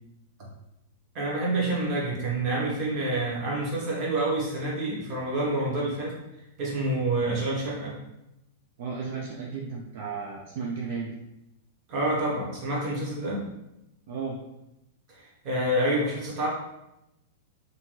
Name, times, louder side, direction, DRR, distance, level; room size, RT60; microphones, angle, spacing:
voice 1, 1.1-6.1 6.6-8.0 11.9-13.5 15.1-16.5, right 1 dB, 25° right, -4 dB, 0.8 m, -28 dB
voice 2, 8.8-11.1 14.1-14.4, right 5 dB, 50° right, -1 dB, 0.3 m, -34 dB
2.5 x 2.2 x 3.0 m, 0.88 s
supercardioid pair, 170°, 0 cm